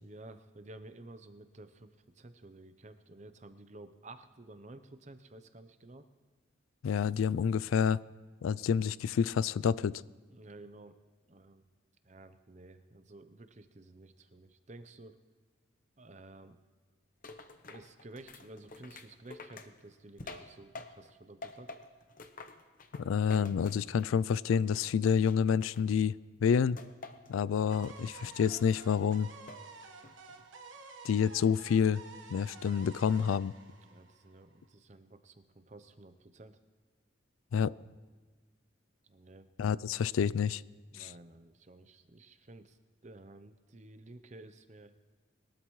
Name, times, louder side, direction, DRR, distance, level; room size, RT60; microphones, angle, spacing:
voice 1, 0.0-1.9 2.1-6.0 10.3-11.0 11.3-11.7 12.0-15.2 16.0-16.6 17.7-21.7 33.8-36.6 39.1-39.5 40.9-42.8 43.0-44.9, right 2 dB, 35° right, 10 dB, 0.7 m, -52 dB
voice 2, 6.8-8.0 8.4-10.0 23.0-26.1 26.4-26.8 27.3-29.3 31.0-32.0 32.3-33.5 37.5-37.7 39.6-40.6 40.9-41.1, left 7 dB, 85° left, 21 dB, 0.3 m, -28 dB
sound 1, 17.2-21.1 21.4-24.2 24.5-26.2 26.8-27.3 27.7-28.4 28.8-29.7 30.0-30.4, left 3 dB, 40° left, 0.8 m, -49 dB
sound 2, 27.7-34.7, right 4 dB, 75° right, 1.3 m, -51 dB
22.0 x 13.0 x 3.2 m, 1.4 s
head